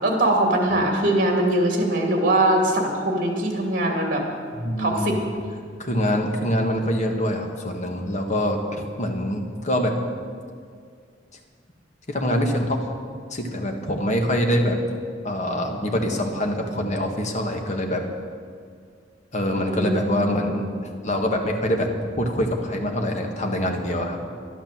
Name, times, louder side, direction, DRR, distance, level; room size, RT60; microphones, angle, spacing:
voice 1, 0.0-4.2 4.8-5.2 19.5-20.6, right 1 dB, 50° right, 2 dB, 2.6 m, -22 dB
voice 2, 4.5-5.2 5.8-10.0 12.1-12.9 13.3-14.8 15.2-18.0 19.3-24.2, equal, 40° left, 3 dB, 1.7 m, -25 dB
12.0 x 11.5 x 7.5 m, 2.1 s
head